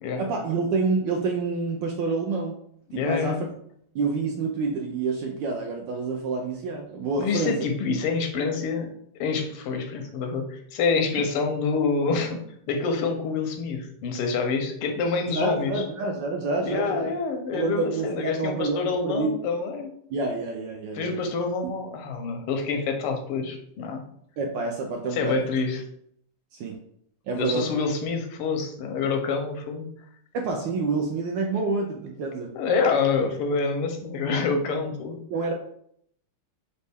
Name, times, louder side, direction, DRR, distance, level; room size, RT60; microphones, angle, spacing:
voice 1, 0.2-2.6 2.9-3.3 3.9-7.6 15.3-17.1 17.5-19.3 20.1-21.2 24.4-25.4 26.5-26.7 27.3-27.7 30.3-32.5 35.3-35.5, right 3 dB, 75° right, 2 dB, 1.0 m, -28 dB
voice 2, 2.9-3.4 7.2-8.9 9.2-12.4 12.7-15.8 16.6-19.9 21.0-24.0 25.1-25.8 27.3-29.9 32.5-35.2, left 4 dB, 90° left, 4 dB, 1.6 m, -27 dB
4.4 x 2.7 x 3.4 m, 0.68 s
omnidirectional pair, 2.4 m